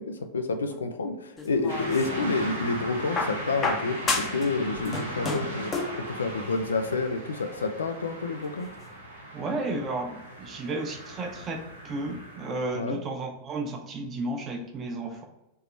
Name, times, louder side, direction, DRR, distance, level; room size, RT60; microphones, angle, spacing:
voice 1, 0.0-8.7 12.7-13.0, left 3 dB, 70° left, 6 dB, 0.4 m, -29 dB
sound 1, 1.4-2.4 3.2-4.5 4.8-6.0 7.1-7.2, left 3 dB, 20° left, 0.7 m, -30 dB
sound 2, 1.7-12.6, right 1 dB, 80° right, 0.9 m, -38 dB
voice 2, 9.3-11.6 11.8-15.2, right 2 dB, 25° right, 3 dB, 0.8 m, -33 dB
3.6 x 2.9 x 4.3 m, 0.94 s
figure-of-eight pair, 90°, 0 cm